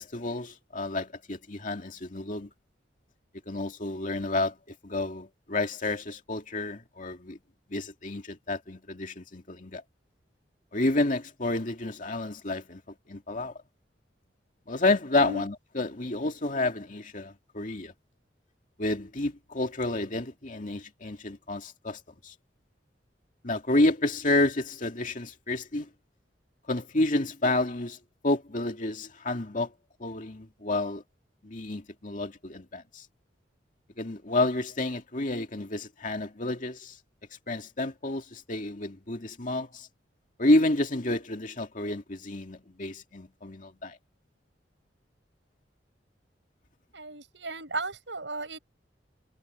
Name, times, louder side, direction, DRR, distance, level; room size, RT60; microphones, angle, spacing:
voice 1, 0.0-2.5 3.5-4.6 4.8-7.4 7.7-9.8 10.7-12.8 13.1-13.5 14.7-17.9 18.8-22.3 23.4-25.9 26.7-28.0 28.2-29.7 30.0-31.0 31.4-33.1 34.0-37.0 37.5-39.9 40.4-44.0, left 2 dB, 45° left, 2.4 m, -30 dB
voice 2, 46.9-48.6, right 3 dB, 80° right, 7.2 m, -35 dB
head